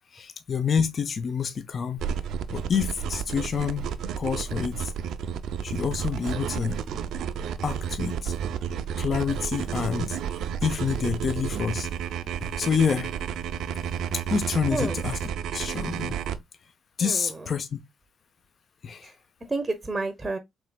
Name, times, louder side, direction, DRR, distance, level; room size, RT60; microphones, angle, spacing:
voice 1, 0.1-2.0 2.5-4.9 5.6-6.8 7.6-8.3 9.0-10.2 10.6-11.9 12.4-13.1 14.1-15.2 15.5-16.2 17.0-17.8 18.8-19.1, left 6 dB, 50° left, 0.6 m, -27 dB
sound 1, 2.0-16.4, right 8 dB, 75° right, 0.5 m, -31 dB
voice 2, 17.0-17.5 19.0-19.1 19.4-20.4, right 3 dB, 20° right, 0.7 m, -30 dB
4.5 x 3.2 x 2.2 m
cardioid pair, 90°, 0 cm